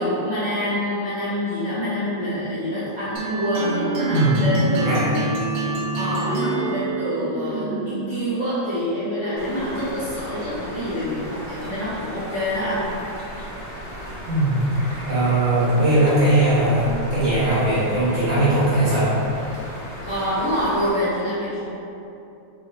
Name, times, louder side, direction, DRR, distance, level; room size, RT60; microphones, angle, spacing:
voice 1, 0.0-5.2 5.9-12.9 20.0-21.6, equal, 30° left, -14 dB, 1.0 m, -26 dB
sound 1, 3.2-8.3, right 3 dB, 85° right, 1.4 m, -26 dB
sound 2, 9.4-20.9, equal, 25° right, 1.2 m, -36 dB
voice 2, 14.3-14.7 15.1-19.1, right 1 dB, 45° right, -11 dB, 1.5 m, -19 dB
3.5 x 3.2 x 4.0 m, 2.8 s
omnidirectional pair, 2.1 m